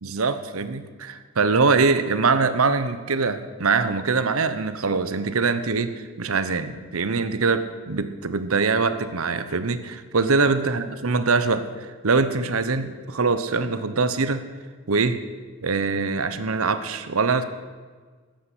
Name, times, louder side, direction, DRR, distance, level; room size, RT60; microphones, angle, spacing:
voice 1, 0.0-14.4 14.9-15.2 15.6-17.4, right 4 dB, 85° right, 11 dB, 1.0 m, -23 dB
14.0 x 10.5 x 8.0 m, 1.5 s
head